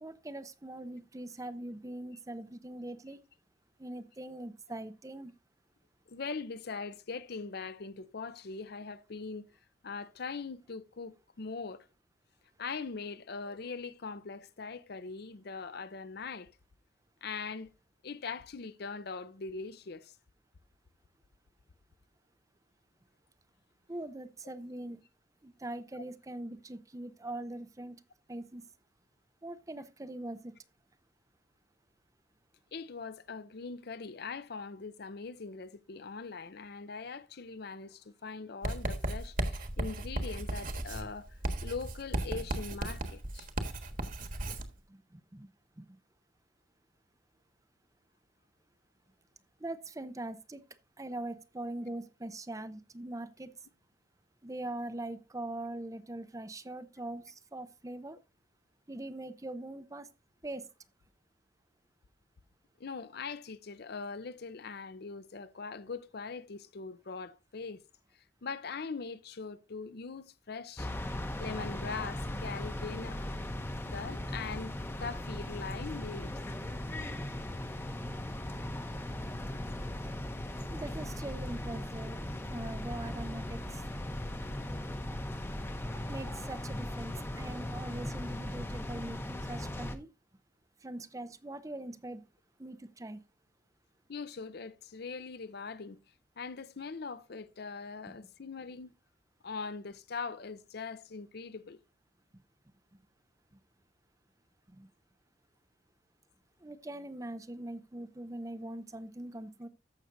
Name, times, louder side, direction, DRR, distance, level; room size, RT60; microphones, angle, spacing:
voice 1, 0.0-3.2 3.8-5.3 23.9-25.0 25.4-28.0 28.3-28.7 29.4-30.6 44.4-44.6 44.9-45.5 45.8-46.0 49.6-50.6 51.0-53.5 54.4-58.2 58.9-60.1 60.4-60.7 80.7-82.2 82.5-83.8 86.1-90.1 90.8-92.2 92.6-93.2 98.1-98.2 104.7-104.9 106.6-109.7, right 1 dB, 20° right, 0.6 m, -42 dB
voice 2, 6.1-9.5 9.8-11.8 12.6-16.5 17.2-17.7 18.0-20.1 32.7-41.3 41.6-43.5 62.8-67.8 68.4-70.9 71.4-73.3 73.9-76.4 94.1-96.0 96.4-98.9 99.4-101.8, left 4 dB, 55° left, 0.6 m, -41 dB
Writing, 38.6-44.7, right 1 dB, 45° right, 1.4 m, -35 dB
sound 1, 70.8-90.0, left 1 dB, 10° left, 0.8 m, -38 dB
14.0 x 6.4 x 2.6 m
head